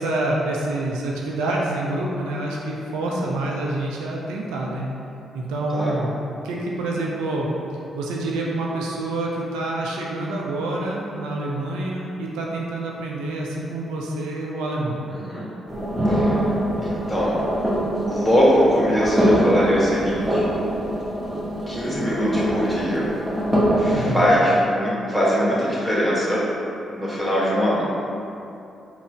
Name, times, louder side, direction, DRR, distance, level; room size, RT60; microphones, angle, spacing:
voice 1, 0.0-4.9 5.3-7.5 7.9-15.0 23.9-24.3, right 2 dB, 75° right, -3 dB, 0.4 m, -27 dB
voice 2, 15.1-15.4 16.1-16.4 16.8-17.4 18.1-20.5 21.7-23.1 23.8-26.4 27.0-27.9, equal, 5° left, -7 dB, 1.5 m, -21 dB
sound 1, 15.7-24.3, equal, 10° right, 1.3 m, -23 dB
4.2 x 2.0 x 4.4 m, 2.7 s
hypercardioid pair, 40°, 0 cm